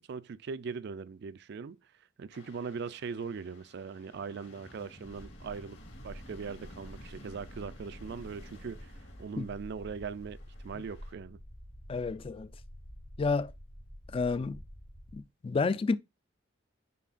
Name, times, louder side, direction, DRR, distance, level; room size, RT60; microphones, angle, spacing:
voice 1, 0.0-1.8 2.2-5.8 6.0-8.9 9.2-11.4, right 5 dB, 55° right, 0.4 m, -40 dB
sound 1, 2.3-11.1, left 1 dB, 65° left, 2.1 m, -55 dB
sound 2, 5.0-15.2, equal, 85° left, 2.4 m, -49 dB
voice 2, 11.9-12.5 13.2-13.5 14.1-14.6 15.1-15.9, left 4 dB, 30° left, 0.3 m, -30 dB
9.3 x 4.1 x 2.5 m
head